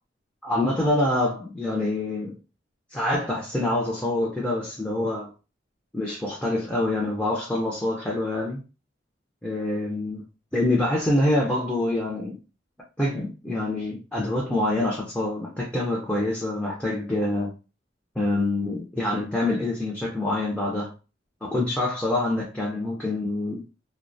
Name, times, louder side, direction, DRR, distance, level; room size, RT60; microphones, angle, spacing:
voice 1, 0.4-2.3 2.9-5.3 5.9-8.6 9.4-10.2 10.5-12.4 13.0-17.5 18.2-20.9 21.4-23.6, left 1 dB, 5° left, 0.4 m, -26 dB
2.3 x 2.1 x 2.5 m
head